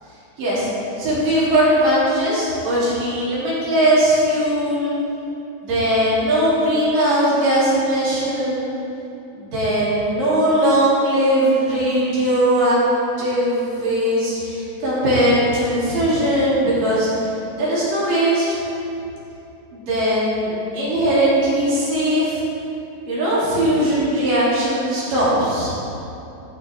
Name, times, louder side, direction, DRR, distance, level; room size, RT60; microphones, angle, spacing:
voice 1, 0.4-0.7 1.0-4.9 5.6-8.8 9.3-12.8 13.2-17.1 17.6-18.6 19.7-22.4 23.1-25.7, right 1 dB, 50° right, -9 dB, 4.0 m, -19 dB
11.5 x 9.4 x 3.5 m, 2.9 s
omnidirectional pair, 5.3 m